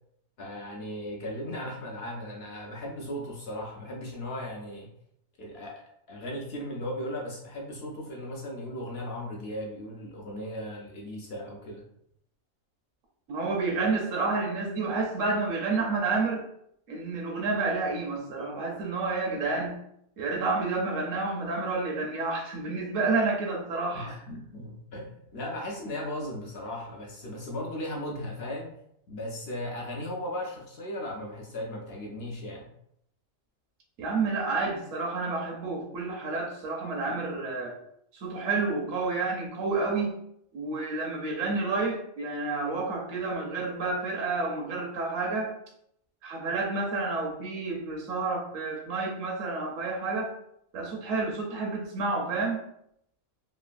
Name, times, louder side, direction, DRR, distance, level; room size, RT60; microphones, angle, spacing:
voice 1, 0.4-4.9 5.4-5.8 6.1-11.9 23.9-28.7 29.1-32.7, left 1 dB, 65° left, 0 dB, 0.6 m, -37 dB
voice 2, 13.3-16.4 16.9-19.8 20.2-24.1 34.0-37.8 38.1-40.1 40.5-45.5 46.2-50.3 50.7-52.6, right 3 dB, 75° right, 0 dB, 1.0 m, -30 dB
3.0 x 2.4 x 2.4 m, 0.74 s
omnidirectional pair, 1.4 m